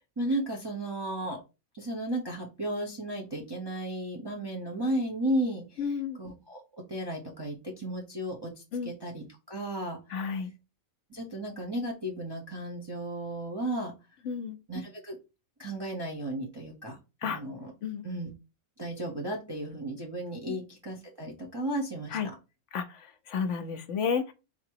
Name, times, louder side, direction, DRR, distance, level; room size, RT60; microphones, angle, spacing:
voice 1, 0.0-1.4 1.7-5.8 6.2-6.6 6.9-8.5 8.8-10.0 11.1-13.9 14.7-15.2 15.6-17.7 18.0-18.3 18.8-22.2, right 1 dB, 20° right, 0.8 m, -34 dB
voice 2, 5.8-6.2 8.7-8.9 10.1-10.5 14.2-14.6 17.2-17.4 17.8-18.1 20.5-20.6 22.1-22.3 22.7-24.3, left 6 dB, 65° left, 0.9 m, -32 dB
4.0 x 2.9 x 4.6 m
omnidirectional pair, 1.5 m